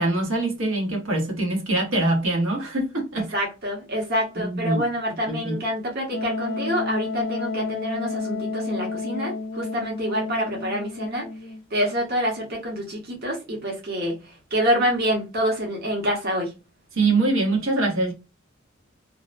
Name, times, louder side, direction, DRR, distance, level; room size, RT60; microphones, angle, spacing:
voice 1, 0.0-3.3 4.4-4.8 5.3-5.6 16.9-18.1, right 2 dB, 80° right, 1.0 m, -23 dB
voice 2, 3.3-11.3 11.7-16.5, equal, 50° right, 0.9 m, -26 dB
Wind instrument woodwind instrument, 6.1-11.6, left 3 dB, 60° left, 0.5 m, -31 dB
2.7 x 2.1 x 2.4 m
head